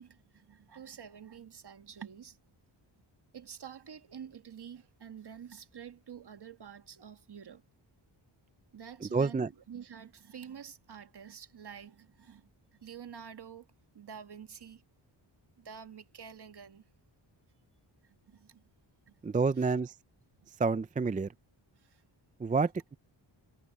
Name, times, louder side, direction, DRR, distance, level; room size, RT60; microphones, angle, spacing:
voice 1, 0.0-2.4 3.3-7.6 8.7-12.5 12.8-13.7 13.9-14.8 15.6-16.8 18.0-18.6 19.1-19.2 19.6-19.8 20.3-20.5 21.8-22.0, right 8 dB, 55° right, 1.7 m, -48 dB
voice 2, 9.0-9.5 19.2-19.9 20.6-21.3 22.4-23.0, right 4 dB, 20° right, 0.4 m, -29 dB
wide cardioid pair, 125°, 47 cm